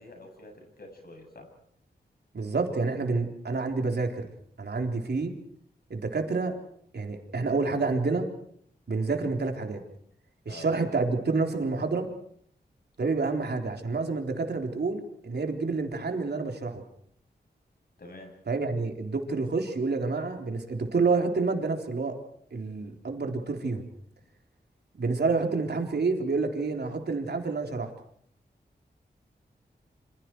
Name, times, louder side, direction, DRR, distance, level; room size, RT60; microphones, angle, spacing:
voice 1, 0.0-1.5 10.5-10.7 13.2-13.3 18.0-18.3, left 2 dB, 60° left, 3 dB, 8.0 m, -46 dB
voice 2, 2.3-4.3 4.6-5.4 5.9-6.6 6.9-8.3 8.9-9.8 10.5-12.1 13.0-16.8 18.5-22.2 22.5-23.8 24.9-27.9, right 3 dB, 70° right, 4 dB, 3.8 m, -28 dB
27.5 x 26.5 x 4.7 m, 0.65 s
wide cardioid pair, 70°, 18 cm